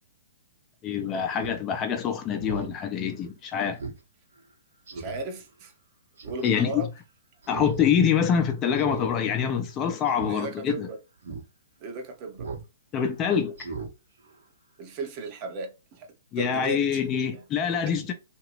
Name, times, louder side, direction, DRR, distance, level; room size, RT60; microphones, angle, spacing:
voice 1, 0.8-3.8 6.4-6.9 7.5-10.9 12.9-13.7 16.3-18.1, left 7 dB, 25° left, 0.7 m, -25 dB
Speech synthesizer, 1.4-1.6 2.0-2.1 2.4-2.7 3.1-3.2 3.8-4.0 4.4-4.5 4.9-5.2 6.2-6.5 7.4-7.8 8.1-8.2 8.8-9.1 9.4-9.6 10.1-10.3 10.8-10.9 11.2-11.4 12.4-12.7 13.0-13.1 13.6-13.9 14.2-14.3, right 5 dB, 65° right, 1.1 m, -37 dB
voice 2, 5.0-5.7 6.2-6.9 10.2-11.0 11.8-12.5 14.8-16.1 16.4-16.8 17.9-18.1, right 3 dB, 35° right, 0.9 m, -35 dB
2.8 x 2.7 x 3.1 m
figure-of-eight pair, 120°, 0 cm